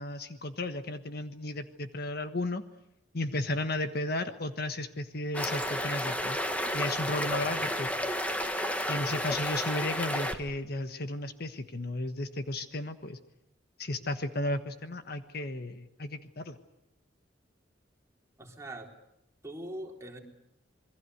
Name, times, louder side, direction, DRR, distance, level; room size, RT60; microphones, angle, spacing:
voice 1, 0.0-2.6 3.1-6.4 6.7-7.9 8.9-13.2 13.8-16.6, left 2 dB, 55° left, 9 dB, 1.4 m, -34 dB
sound 1, 5.3-10.3, equal, 10° left, 1.7 m, -32 dB
voice 2, 7.3-7.8 8.8-9.1 18.4-19.0 19.4-20.2, right 1 dB, 15° right, 0 dB, 3.8 m, -43 dB
27.0 x 21.5 x 8.1 m, 0.81 s
head